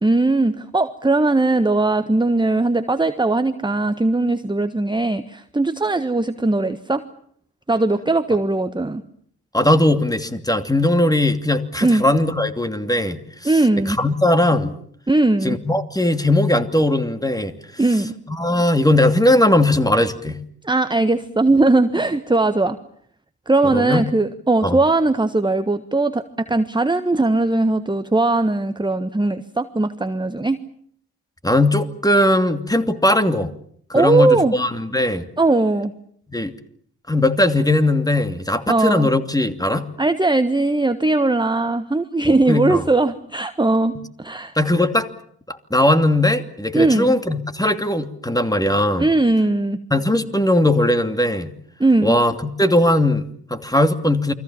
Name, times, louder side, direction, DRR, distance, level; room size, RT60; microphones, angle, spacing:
voice 1, 0.0-7.0 7.7-9.0 11.8-12.0 13.4-14.0 15.1-15.6 17.8-18.2 20.6-22.8 23.5-30.6 33.9-34.5 35.4-35.9 38.7-39.1 40.0-44.5 46.7-47.1 49.0-49.8 51.8-52.1, right 2 dB, 10° right, 10 dB, 1.4 m, -19 dB
voice 2, 9.5-13.5 13.9-14.7 15.4-17.5 18.3-20.4 23.6-24.0 24.6-24.8 31.4-33.5 33.9-35.2 36.3-36.5 37.1-39.9 42.3-42.8 44.5-45.1 45.5-49.1 49.9-51.5 52.0-54.3, left 1 dB, 10° left, 9 dB, 2.7 m, -19 dB
29.0 x 22.5 x 7.3 m, 0.64 s
hypercardioid pair, 45°, 46 cm